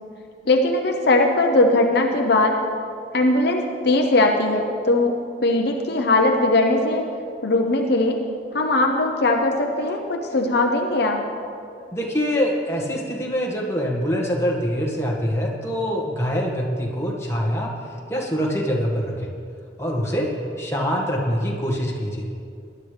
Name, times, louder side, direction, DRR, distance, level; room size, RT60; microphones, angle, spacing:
voice 1, 0.5-2.6 3.1-7.1 7.4-8.2 8.5-11.2, left 2 dB, 60° left, 2 dB, 0.9 m, -20 dB
voice 2, 11.9-17.7 18.1-19.3 19.8-20.3 20.6-22.3, equal, 15° left, -2 dB, 1.8 m, -24 dB
19.5 x 11.5 x 3.4 m, 2.4 s
head